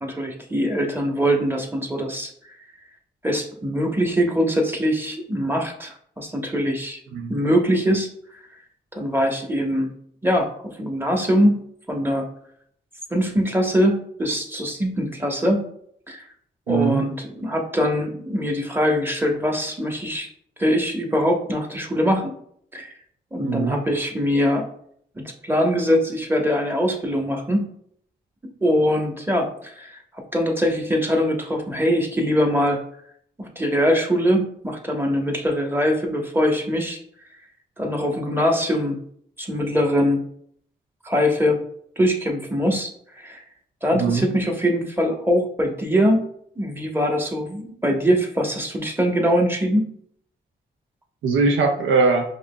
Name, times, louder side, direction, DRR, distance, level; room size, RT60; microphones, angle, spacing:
voice 1, 0.0-2.3 3.2-7.0 7.3-8.1 8.9-9.9 10.2-12.3 13.1-15.7 16.1-16.2 16.7-20.3 20.6-22.3 22.7-22.9 23.3-24.7 25.1-27.7 28.6-30.0 30.3-32.8 33.4-37.0 37.8-39.0 39.4-40.2 41.0-41.6 42.0-43.4 43.8-46.2 46.6-49.9, equal, 10° right, 2 dB, 1.0 m, -22 dB
voice 2, 16.7-17.0 23.4-23.8 43.9-44.3 51.2-52.2, right 4 dB, 80° right, 2 dB, 0.5 m, -21 dB
4.8 x 3.0 x 2.2 m, 0.65 s
supercardioid pair, 40°, 20 cm